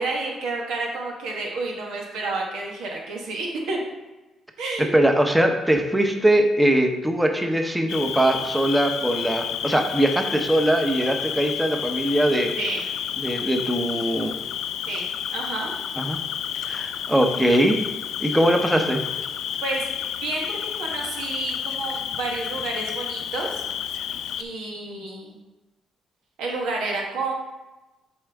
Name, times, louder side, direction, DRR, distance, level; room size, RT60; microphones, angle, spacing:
voice 1, 0.0-3.8 4.6-4.9 12.6-12.9 14.9-15.7 18.2-18.4 19.6-19.9 20.2-23.5 24.4-25.4 26.4-27.3, right 3 dB, 90° right, -1 dB, 1.4 m, -30 dB
voice 2, 4.8-12.5 13.2-14.3 16.0-16.2 16.7-17.8 18.2-19.0, right 1 dB, 10° right, 4 dB, 0.8 m, -21 dB
Cricket, 7.9-24.4, left 9 dB, 80° left, 0.4 m, -30 dB
7.3 x 4.3 x 3.5 m, 1.1 s
cardioid pair, 90°, 0 cm